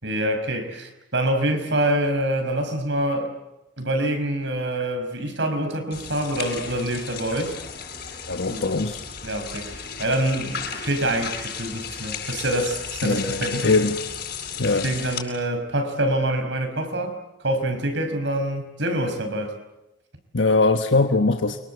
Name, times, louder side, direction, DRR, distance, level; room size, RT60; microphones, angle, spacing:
voice 1, 0.0-3.3 3.8-7.6 8.5-8.7 9.2-13.7 14.7-17.2 17.4-19.5, right 1 dB, 70° right, 7 dB, 5.2 m, -26 dB
sound 1, 5.9-15.2, left 7 dB, 55° left, 7.8 m, -34 dB
voice 2, 8.3-9.0 13.0-14.0 14.6-14.9 20.3-21.6, left 3 dB, 80° left, 6 dB, 1.3 m, -21 dB
29.0 x 25.0 x 8.2 m, 0.94 s
head